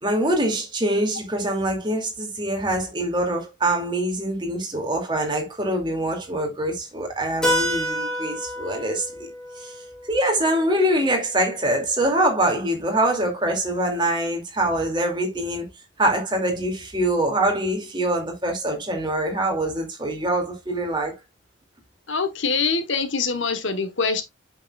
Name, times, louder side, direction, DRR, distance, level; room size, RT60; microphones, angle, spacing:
voice 1, 0.0-9.3 9.6-9.7 10.1-15.7 16.0-21.2, right 1 dB, 20° right, 2.3 m, -24 dB
Keyboard (musical), 7.4-11.9, equal, 5° left, 2.6 m, -29 dB
voice 2, 22.1-24.2, left 4 dB, 65° left, 1.1 m, -24 dB
8.5 x 6.8 x 2.3 m
head